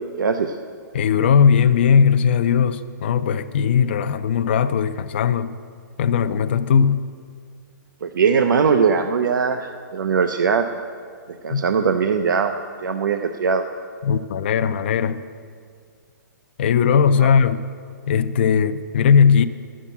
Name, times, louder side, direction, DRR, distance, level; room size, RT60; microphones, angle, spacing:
voice 1, 0.2-0.6 8.0-10.6 11.4-12.5 12.8-13.6, right 6 dB, 80° right, 7 dB, 0.6 m, -20 dB
voice 2, 0.9-5.5 6.0-7.0 11.5-11.6 14.0-15.2 16.6-17.6 18.1-19.4, left 7 dB, 35° left, 9 dB, 0.3 m, -18 dB
10.0 x 7.4 x 8.2 m, 2.1 s
hypercardioid pair, 175°, 10 cm